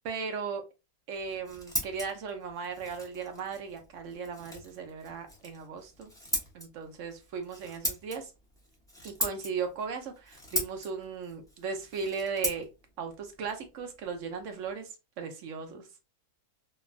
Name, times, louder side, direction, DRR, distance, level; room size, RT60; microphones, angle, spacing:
voice 1, 0.0-0.6 1.1-6.1 6.5-8.3 9.0-12.7 13.0-14.9 15.2-16.1, right 5 dB, 65° right, 6 dB, 0.9 m, -37 dB
Scissors, 1.1-14.7, equal, 5° left, 0.4 m, -39 dB
3.2 x 2.3 x 2.3 m, 0.26 s
omnidirectional pair, 1.7 m